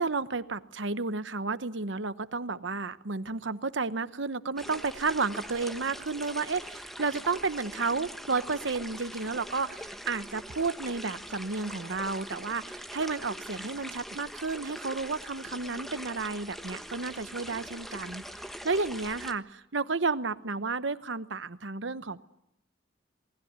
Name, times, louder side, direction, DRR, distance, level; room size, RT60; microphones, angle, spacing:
voice 1, 0.0-18.2 18.6-22.2, right 4 dB, 75° right, 13 dB, 1.1 m, -32 dB
sound 1, 4.6-19.3, equal, ahead, 1.4 m, -43 dB
28.0 x 19.5 x 9.5 m, 0.82 s
head